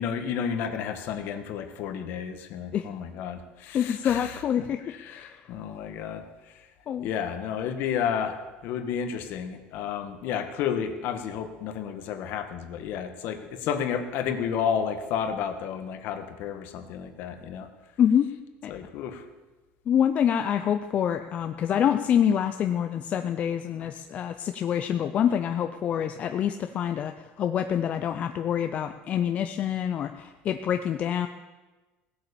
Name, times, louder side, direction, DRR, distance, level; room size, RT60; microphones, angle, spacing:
voice 1, 0.0-4.4 4.9-6.5 7.0-17.7 18.7-19.2, left 8 dB, 60° left, 8 dB, 1.5 m, -31 dB
voice 2, 3.7-5.5 6.9-7.1 18.0-18.3 18.6-18.7 19.9-31.3, left 9 dB, 35° left, 7 dB, 0.6 m, -26 dB
17.5 x 8.3 x 7.0 m, 1.2 s
cardioid pair, 150°, 4 cm